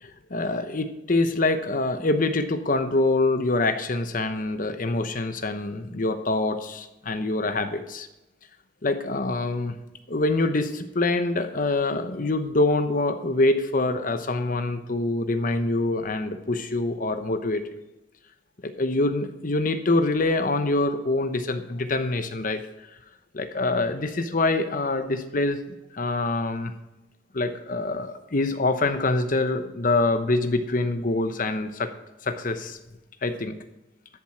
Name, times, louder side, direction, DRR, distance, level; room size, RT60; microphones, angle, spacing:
voice 1, 0.0-8.1 8.8-9.7 10.1-17.6 18.6-22.6 23.3-26.7 27.3-31.9 32.2-32.8 33.2-33.6, left 2 dB, 45° left, 9 dB, 0.9 m, -25 dB
12.5 x 7.4 x 4.4 m, 0.99 s
head